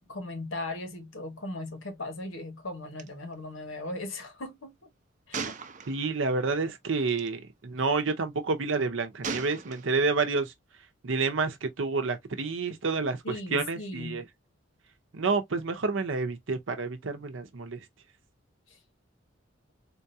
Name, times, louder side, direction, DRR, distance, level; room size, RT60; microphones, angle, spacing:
voice 1, 0.1-4.7 5.3-5.6 13.2-14.2 18.7-18.8, left 2 dB, 85° left, 1.2 m, -38 dB
Gunshot gunfire, 3.0-3.1 3.3-3.5 5.3-6.3 7.1-7.3 9.2-10.2, right 5 dB, 40° right, 0.5 m, -37 dB
voice 2, 5.9-10.5 11.0-13.2 13.5-14.2 15.1-17.8, right 4 dB, 80° right, 0.7 m, -29 dB
3.7 x 2.4 x 2.6 m
head